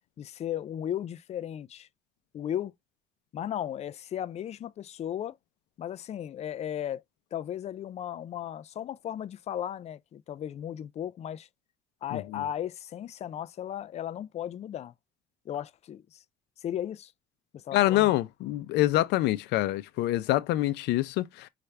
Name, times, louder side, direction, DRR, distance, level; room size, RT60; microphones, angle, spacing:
voice 1, 0.2-1.9 2.3-2.7 3.3-5.4 5.8-7.0 7.3-11.5 12.0-14.9 15.5-16.2 16.6-17.1 17.5-18.1, left 10 dB, 40° left, 0.4 m, -35 dB
voice 2, 12.1-12.4 17.7-21.5, left 15 dB, 85° left, 0.6 m, -26 dB
5.7 x 2.5 x 3.3 m
cardioid pair, 110°, 17 cm